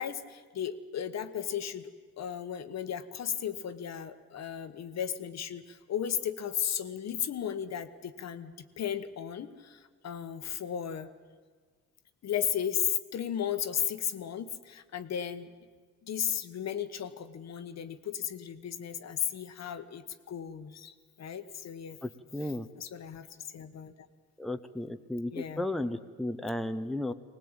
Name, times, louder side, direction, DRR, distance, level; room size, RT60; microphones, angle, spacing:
voice 1, 0.0-1.9 2.2-11.1 12.2-15.5 16.0-22.0 22.8-23.3 23.5-23.9 25.3-25.7, left 9 dB, 60° left, 10 dB, 1.3 m, -35 dB
voice 2, 22.0-22.7 24.4-27.1, left 1 dB, ahead, 8 dB, 0.9 m, -34 dB
20.0 x 19.0 x 8.9 m, 1.5 s
cardioid pair, 90°, 30 cm